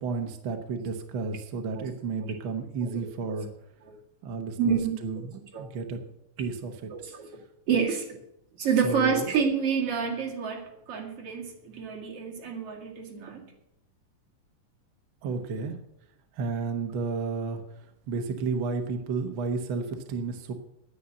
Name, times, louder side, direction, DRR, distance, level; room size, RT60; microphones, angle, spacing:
voice 1, 0.0-3.5 4.2-6.0 6.4-6.9 8.8-9.2 15.2-15.8 16.4-17.6 18.1-20.5, right 4 dB, 70° right, 5 dB, 1.1 m, -32 dB
voice 2, 2.8-3.4 3.8-4.0 4.6-4.9 5.5-5.7 6.9-7.3 7.7-8.2 8.6-13.5, right 6 dB, 50° right, -1 dB, 3.0 m, -29 dB
10.0 x 9.6 x 7.6 m, 0.82 s
omnidirectional pair, 3.7 m